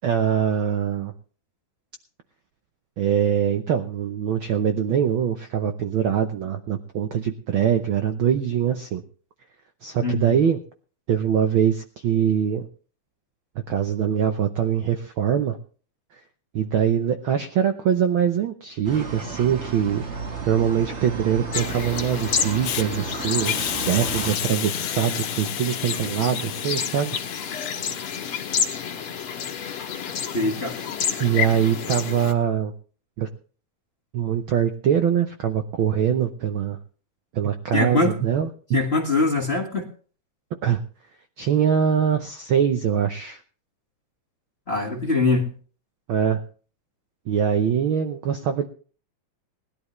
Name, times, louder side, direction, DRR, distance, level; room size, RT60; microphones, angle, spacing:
voice 1, 0.0-1.1 3.0-9.0 9.8-10.6 11.1-12.7 13.7-15.6 16.1-16.2 16.5-20.0 20.4-27.2 31.2-32.7 33.2-33.3 34.1-36.8 37.3-38.8 40.6-40.8 41.4-43.4 46.1-46.4 47.3-48.7, right 8 dB, 85° right, 7 dB, 1.1 m, -23 dB
voice 2, 10.0-10.3 30.3-30.8 37.7-38.1 38.7-39.9 44.7-45.5, left 3 dB, 30° left, 1 dB, 1.4 m, -22 dB
sound 1, 18.8-24.3, right 5 dB, 50° right, 0.8 m, -33 dB
sound 2, 21.5-32.3, left 7 dB, 55° left, 2.0 m, -29 dB
Hiss, 22.6-22.8 23.4-28.6, left 11 dB, 85° left, 2.4 m, -33 dB
20.0 x 12.0 x 3.2 m, 0.41 s
omnidirectional pair, 3.4 m